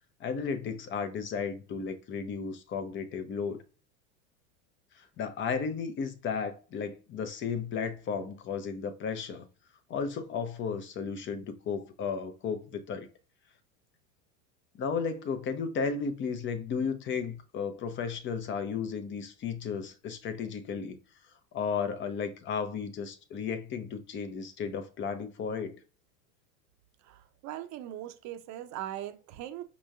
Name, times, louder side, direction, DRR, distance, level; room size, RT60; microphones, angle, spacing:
voice 1, 0.2-3.6 5.0-9.5 9.9-13.1 14.8-21.0 21.5-25.8, left 6 dB, 30° left, 0.7 m, -34 dB
voice 2, 27.0-29.6, right 12 dB, 45° right, 0.6 m, -40 dB
5.2 x 3.0 x 2.3 m
supercardioid pair, 115°, 38 cm